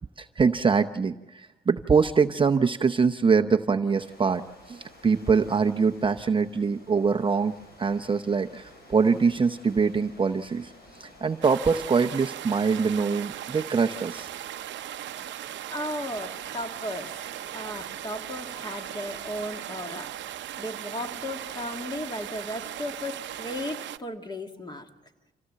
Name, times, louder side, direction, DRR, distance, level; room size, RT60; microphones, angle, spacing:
voice 1, 0.2-7.5 7.8-10.7 11.0-14.3, right 5 dB, 25° right, 6 dB, 0.7 m, -24 dB
sound 1, 3.9-23.7, left 1 dB, 50° left, 7.6 m, -53 dB
sound 2, 11.4-24.0, right 12 dB, 65° right, 0.7 m, -38 dB
voice 2, 15.7-24.9, left 1 dB, 20° left, 5 dB, 2.0 m, -36 dB
26.0 x 16.5 x 7.4 m, 1.0 s
cardioid pair, 90°, 20 cm